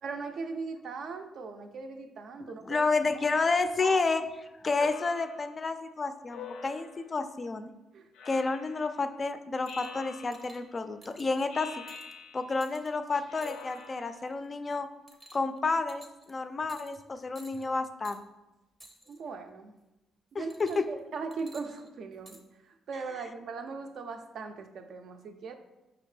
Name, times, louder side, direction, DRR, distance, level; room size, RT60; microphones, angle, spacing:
voice 1, 0.0-2.8 3.8-4.0 4.8-4.9 7.9-8.1 19.1-19.7 20.3-25.5, right 4 dB, 65° right, 7 dB, 0.4 m, -39 dB
voice 2, 2.6-4.3 4.6-7.7 8.3-11.8 12.3-14.9 15.3-18.2 20.3-20.9, left 3 dB, 35° left, 10 dB, 0.3 m, -30 dB
Speech synthesizer, 4.8-5.6 6.3-7.2 8.1-9.0 9.7-10.7 11.5-12.7 13.3-14.3, left 5 dB, 90° left, 0.5 m, -46 dB
sound 1, 9.7-10.0 10.3-10.6 11.0-11.4 11.9-12.1 12.6-12.9 13.4-13.9 14.3-14.5 15.1-15.6 15.9-16.3 16.7-17.0 17.3-17.7 18.0-18.2 18.8-19.2 20.5-21.0 21.3-22.4 23.2-23.3, right 1 dB, 10° right, 0.6 m, -54 dB
5.1 x 2.8 x 3.2 m, 0.99 s
cardioid pair, 90°, 0 cm